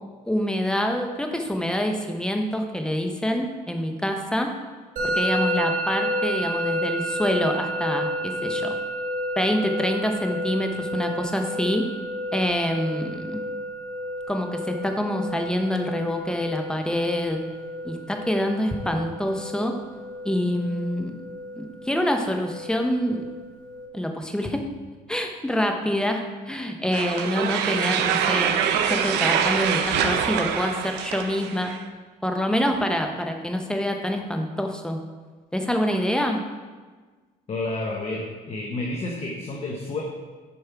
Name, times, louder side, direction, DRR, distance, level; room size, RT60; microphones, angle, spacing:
voice 1, 0.2-4.5 5.0-8.7 9.4-11.9 12.3-13.4 14.3-17.4 17.8-19.7 20.2-21.1 21.6-23.2 23.9-24.6 25.1-31.7 32.2-35.0 35.5-36.4, equal, 5° left, 4 dB, 0.8 m, -26 dB
Musical instrument, 5.0-23.9, equal, 50° right, 1.7 m, -31 dB
sound 1, 26.9-31.8, right 8 dB, 85° right, 0.6 m, -24 dB
voice 2, 37.5-40.0, left 2 dB, 35° left, 0 dB, 1.0 m, -30 dB
6.9 x 5.3 x 4.6 m, 1.4 s
cardioid pair, 110°, 17 cm